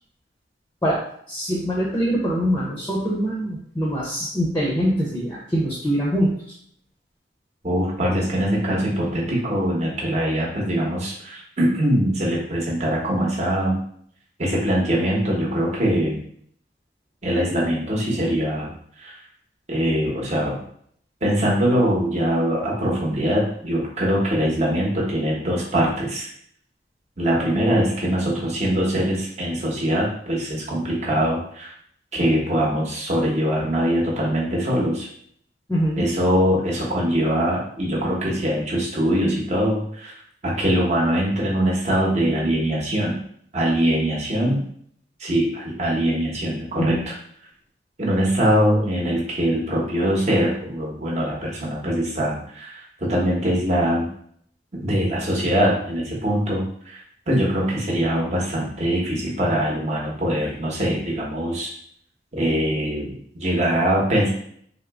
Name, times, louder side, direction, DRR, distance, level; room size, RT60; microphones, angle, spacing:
voice 1, 1.3-6.4 35.7-36.1 46.8-47.0, equal, 15° left, -5 dB, 0.6 m, -23 dB
voice 2, 7.6-13.8 14.4-16.2 17.2-18.7 19.0-19.2 19.7-20.6 21.2-26.3 27.2-31.7 32.1-35.1 36.0-40.1 40.4-43.2 43.5-44.7 45.2-47.1 48.0-54.1 54.7-61.7 62.3-64.3, equal, 40° right, -3 dB, 0.9 m, -22 dB
3.6 x 2.0 x 3.4 m, 0.64 s
head